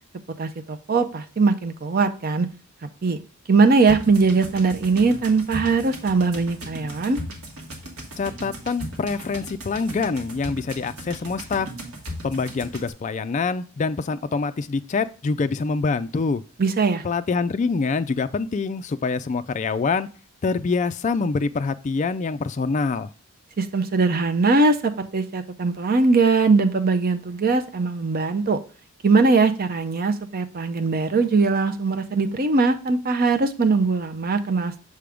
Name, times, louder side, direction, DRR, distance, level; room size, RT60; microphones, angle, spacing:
voice 1, 0.4-2.5 2.8-3.2 3.5-7.2 16.6-17.0 23.6-28.6 29.0-34.7, right 4 dB, 40° right, 8 dB, 0.5 m, -21 dB
sound 1, 3.9-12.9, equal, 80° right, 1.5 m, -37 dB
voice 2, 8.2-11.7 12.2-16.4 17.0-20.1 20.4-23.1, left 4 dB, 35° left, 11 dB, 0.3 m, -25 dB
6.8 x 3.5 x 5.0 m, 0.37 s
head